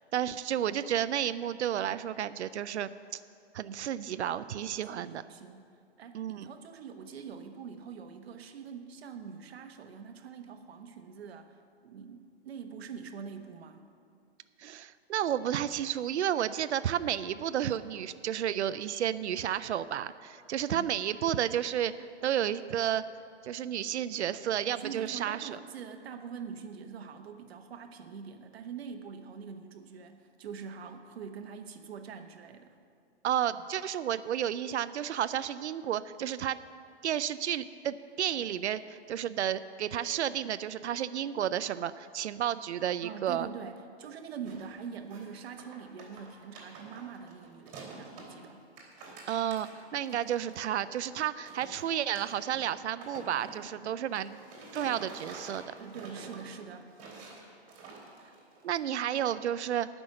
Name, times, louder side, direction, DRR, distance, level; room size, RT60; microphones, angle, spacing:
voice 1, 0.1-3.2 3.5-5.2 6.1-6.5 14.6-23.0 23.4-25.5 33.2-36.6 37.0-43.5 49.3-54.4 54.7-55.7 58.6-59.9, right 10 dB, 90° right, 14 dB, 0.6 m, -32 dB
voice 2, 4.5-5.7 6.0-11.5 11.8-13.8 20.7-20.9 24.7-32.8 43.0-48.6 55.5-56.9, right 6 dB, 65° right, 6 dB, 1.3 m, -44 dB
sound 1, 44.4-44.8 45.0-48.4 48.6-51.1 51.5-58.8, right 3 dB, 30° right, 3.1 m, -48 dB
18.5 x 6.2 x 6.4 m, 2.3 s
hypercardioid pair, 155°, 33 cm